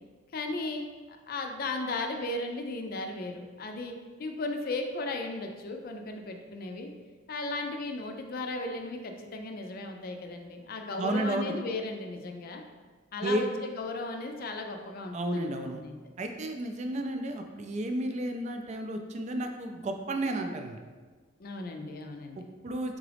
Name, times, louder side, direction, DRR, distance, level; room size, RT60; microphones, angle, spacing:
voice 1, 0.3-6.9 7.3-12.6 13.1-15.9 21.4-22.5, left 2 dB, 50° left, 4 dB, 0.4 m, -36 dB
voice 2, 11.0-11.5 13.2-13.4 15.1-15.8 16.2-20.8 22.4-23.0, right 1 dB, 40° right, 5 dB, 0.4 m, -32 dB
3.8 x 3.6 x 3.3 m, 1.4 s
head